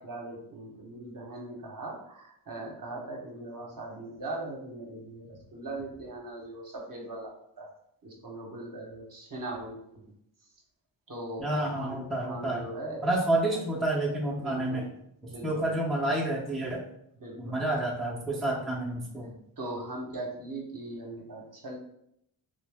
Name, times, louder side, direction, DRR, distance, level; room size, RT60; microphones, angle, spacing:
voice 1, 0.0-7.7 8.0-10.1 11.1-13.0 13.5-13.6 14.3-14.9 15.3-15.8 17.2-17.6 19.6-21.8, right 2 dB, 40° right, 0 dB, 0.9 m, -40 dB
voice 2, 11.4-12.7 13.0-14.8 15.2-16.9 17.4-19.3, right 1 dB, ahead, -3 dB, 0.6 m, -29 dB
2.6 x 2.0 x 3.4 m, 0.75 s
cardioid pair, 45°, 49 cm